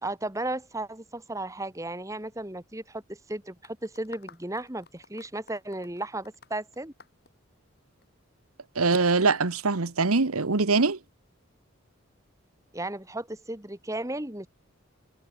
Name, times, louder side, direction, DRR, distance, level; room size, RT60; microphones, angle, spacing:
voice 1, 0.0-6.9 12.7-14.5, right 2 dB, 15° right, 1.6 m, -35 dB
sound 1, 3.6-8.0, left 5 dB, 45° left, 6.1 m, -52 dB
voice 2, 8.7-11.0, right 4 dB, 85° right, 1.3 m, -23 dB
head